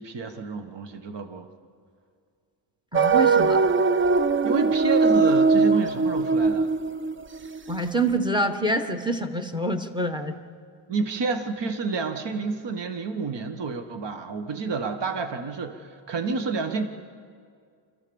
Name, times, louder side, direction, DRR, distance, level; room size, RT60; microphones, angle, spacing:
voice 1, 0.0-1.5 4.4-6.7 10.9-16.9, right 4 dB, 60° right, 7 dB, 1.6 m, -29 dB
voice 2, 2.9-3.6 7.7-10.4, right 1 dB, 10° right, 7 dB, 1.4 m, -26 dB
sound 1, 2.9-7.8, right 4 dB, 25° right, 0.5 m, -21 dB
26.5 x 14.5 x 7.2 m, 2.1 s
wide cardioid pair, 125°, 47 cm